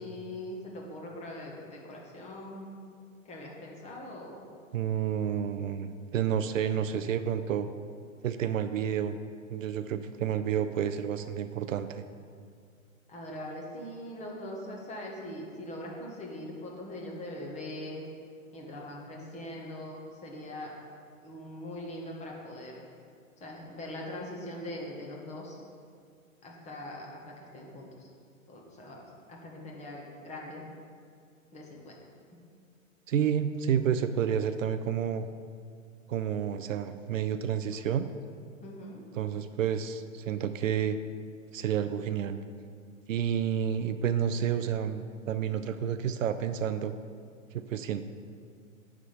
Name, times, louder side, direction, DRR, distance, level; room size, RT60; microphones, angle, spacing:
voice 1, 0.0-2.7 3.2-4.6 13.1-18.0 18.5-20.0 20.2-20.7 21.2-22.8 23.4-25.6 26.4-28.1 28.5-30.7 31.5-32.0 32.3-32.4 38.6-39.0, left 1 dB, 15° left, -2 dB, 1.4 m, -42 dB
voice 2, 4.7-7.7 8.2-9.2 9.5-12.0 33.1-35.3 36.1-38.1 39.1-41.0 41.5-42.4 43.1-46.9 47.5-48.0, right 8 dB, 70° right, 10 dB, 0.6 m, -30 dB
10.0 x 3.7 x 6.9 m, 2.2 s
hypercardioid pair, 125°, 41 cm